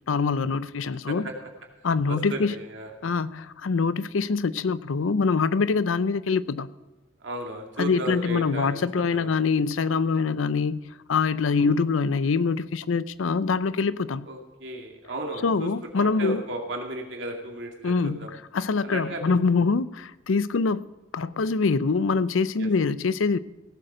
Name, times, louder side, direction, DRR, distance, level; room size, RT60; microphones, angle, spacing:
voice 1, 0.1-1.3 1.8-2.5 3.0-6.7 7.8-14.3 15.4-16.4 17.8-18.2 18.5-20.8 21.1-23.4, left 4 dB, 80° left, 17 dB, 0.5 m, -24 dB
voice 2, 2.1-2.9 7.2-9.3 11.5-11.7 14.2-15.7 16.0-18.3 18.8-19.2 22.6-22.7, right 1 dB, 65° right, 2 dB, 2.4 m, -35 dB
17.0 x 7.9 x 5.1 m, 1.2 s
head